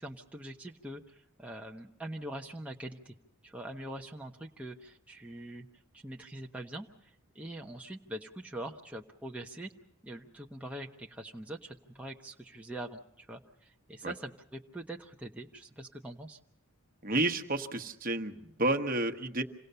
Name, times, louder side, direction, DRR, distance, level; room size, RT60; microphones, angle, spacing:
voice 1, 0.0-3.1 3.4-5.7 5.9-9.7 10.0-16.4, right 1 dB, 5° right, 0 dB, 0.9 m, -43 dB
voice 2, 17.0-19.4, right 2 dB, 40° right, 6 dB, 1.2 m, -31 dB
27.0 x 18.5 x 6.8 m, 0.82 s
head